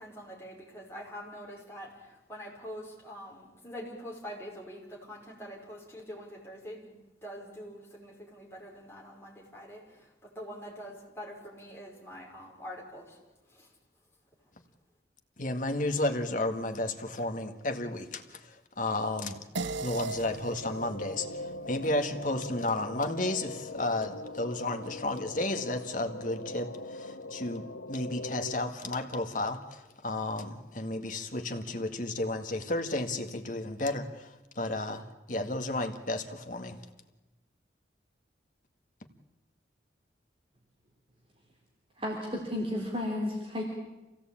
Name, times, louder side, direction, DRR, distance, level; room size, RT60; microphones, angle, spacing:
voice 1, 0.0-7.0 7.2-13.2 13.5-13.7, equal, 15° left, -3 dB, 5.4 m, -45 dB
voice 2, 15.4-19.4 19.8-36.8, left 2 dB, 45° left, 7 dB, 1.8 m, -33 dB
sound 1, 19.5-24.3, right 3 dB, 90° right, 0.8 m, -41 dB
sound 2, 20.6-28.5, left 2 dB, 85° left, 0.8 m, -41 dB
voice 3, 42.0-43.6, left 1 dB, 30° right, -1 dB, 3.5 m, -32 dB
27.0 x 17.0 x 8.8 m, 1.1 s
head